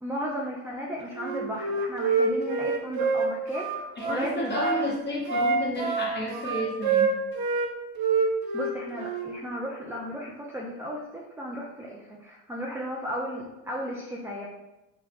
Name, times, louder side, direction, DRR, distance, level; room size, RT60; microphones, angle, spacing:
voice 1, 0.0-4.9 8.5-14.5, equal, 5° right, -2 dB, 0.5 m, -35 dB
Wind instrument woodwind instrument, 1.1-4.8 5.3-7.7 8.0-9.3, right 4 dB, 50° right, 0.9 m, -26 dB
voice 2, 4.0-7.1, left 1 dB, 25° left, -4 dB, 1.5 m, -31 dB
4.6 x 2.4 x 3.5 m, 1.0 s
supercardioid pair, 70°, 45 cm